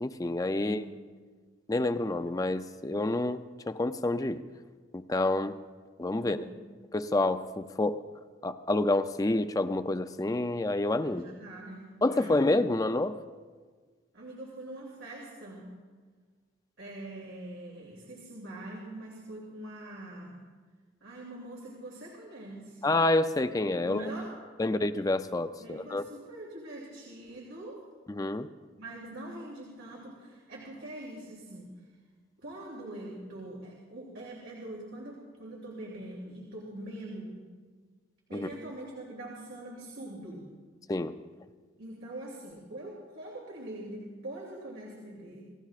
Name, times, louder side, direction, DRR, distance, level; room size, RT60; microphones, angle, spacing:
voice 1, 0.0-0.8 1.7-4.4 4.9-5.6 6.0-6.4 6.9-8.0 8.4-11.3 12.0-13.2 22.8-24.0 24.6-26.0 28.1-28.5 38.3-38.5 40.9-41.1, left 2 dB, 20° left, 10 dB, 0.4 m, -28 dB
voice 2, 0.5-0.9 6.1-6.6 11.0-12.4 14.1-15.8 16.8-20.4 21.0-22.8 23.8-24.3 25.6-27.8 28.8-31.8 32.4-37.4 38.3-40.4 41.8-45.4, right 1 dB, 90° right, -3 dB, 2.9 m, -43 dB
29.0 x 16.5 x 2.5 m, 1.5 s
head